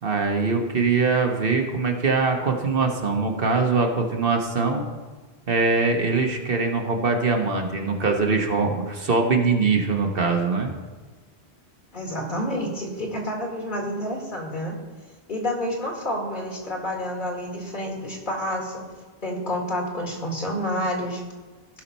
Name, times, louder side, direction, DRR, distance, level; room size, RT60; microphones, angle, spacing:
voice 1, 0.0-4.8 5.5-10.7, right 4 dB, 60° right, 3 dB, 1.3 m, -22 dB
voice 2, 11.9-14.7 15.3-18.8 19.2-21.2, equal, 50° left, 0 dB, 2.0 m, -29 dB
16.0 x 5.8 x 4.1 m, 1.3 s
omnidirectional pair, 1.1 m